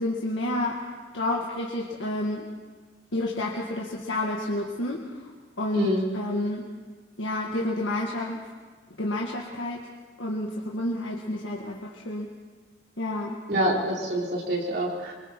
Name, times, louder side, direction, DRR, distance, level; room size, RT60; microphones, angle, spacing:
voice 1, 0.0-2.5 3.1-5.3 5.6-5.9 6.1-6.7 7.2-8.4 9.0-9.9 10.2-12.3 13.0-13.4, left 1 dB, 80° left, -2 dB, 1.8 m, -30 dB
voice 2, 5.7-6.0 13.5-15.1, equal, 60° right, -3 dB, 4.4 m, -26 dB
25.0 x 23.5 x 4.6 m, 1.4 s
head